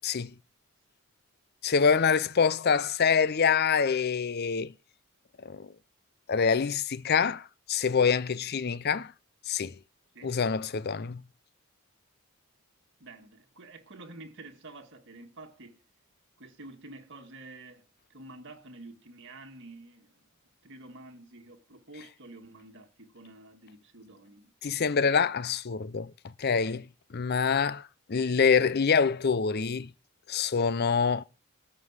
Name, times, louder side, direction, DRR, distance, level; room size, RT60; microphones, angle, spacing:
voice 1, 1.6-4.7 5.4-5.7 6.3-9.1 9.5-9.7 10.2-11.2 24.6-26.1 26.4-26.9 27.1-29.9 30.3-31.2, left 6 dB, 45° left, 0.5 m, -26 dB
voice 2, 13.0-15.8 16.4-20.3 20.6-24.5, right 2 dB, 55° right, 1.8 m, -49 dB
13.0 x 5.3 x 8.1 m
head